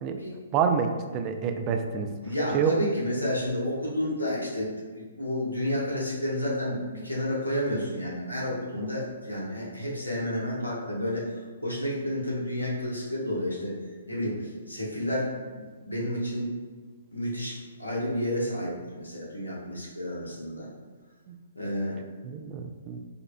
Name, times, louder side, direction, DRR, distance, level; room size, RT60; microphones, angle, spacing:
voice 1, 0.0-0.4 2.2-11.2 11.6-13.7 14.1-16.5 17.1-20.7 21.5-22.0, left 1 dB, 90° left, -5 dB, 1.0 m, -31 dB
voice 2, 0.5-2.1 2.5-2.7 9.0-9.1 21.3-21.4 22.2-23.0, right 6 dB, 30° right, 6 dB, 0.3 m, -27 dB
5.2 x 2.3 x 2.2 m, 1.5 s
figure-of-eight pair, 125°, 0 cm